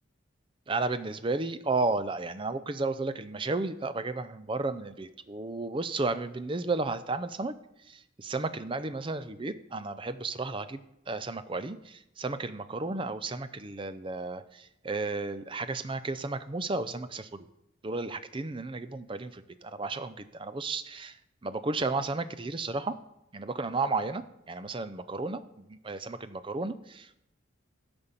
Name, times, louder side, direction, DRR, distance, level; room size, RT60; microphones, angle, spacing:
voice 1, 0.7-7.5 7.8-17.5 17.8-21.2 21.4-22.9 23.3-27.1, right 3 dB, 25° right, 13 dB, 0.5 m, -33 dB
10.5 x 5.3 x 7.3 m, 0.84 s
head